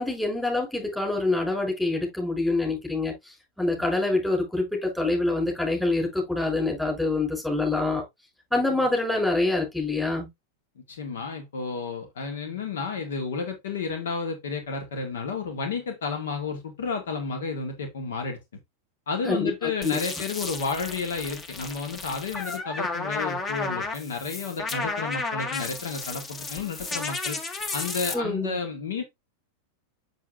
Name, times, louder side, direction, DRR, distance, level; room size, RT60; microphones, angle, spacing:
voice 1, 0.0-8.0 8.5-10.3 19.2-20.0 28.1-28.6, left 2 dB, 5° left, 5.4 m, -26 dB
voice 2, 10.8-18.4 19.1-27.4 27.7-29.0, left 5 dB, 60° left, 1.9 m, -31 dB
sound 1, 19.8-28.1, left 3 dB, 20° left, 1.7 m, -33 dB
7.5 x 7.4 x 2.5 m
figure-of-eight pair, 90°, 0 cm